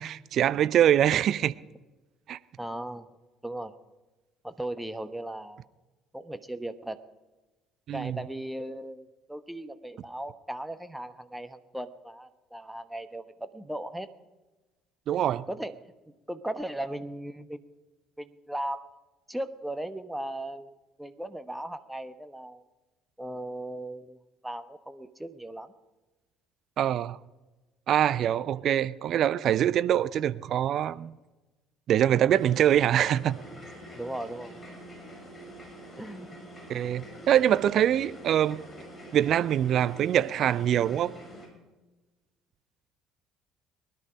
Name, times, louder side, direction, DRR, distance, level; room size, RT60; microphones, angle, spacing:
voice 1, 0.0-1.5 2.3-2.4 7.9-8.2 15.1-15.5 26.8-27.2 27.9-31.2 31.9-33.4 36.7-38.6 39.1-41.1, right 10 dB, 50° right, 0.5 m, -24 dB
voice 2, 2.6-3.1 3.4-3.8 4.4-5.6 6.1-7.0 7.9-14.1 15.5-15.7 16.1-17.6 18.2-18.9 19.3-22.6 23.2-24.2 24.4-25.7 33.9-34.7 35.9-36.4, right 1 dB, 5° right, 1.0 m, -37 dB
sound 1, 32.3-41.5, equal, 15° left, 6.5 m, -46 dB
20.5 x 11.0 x 5.1 m
figure-of-eight pair, 55°, 0 cm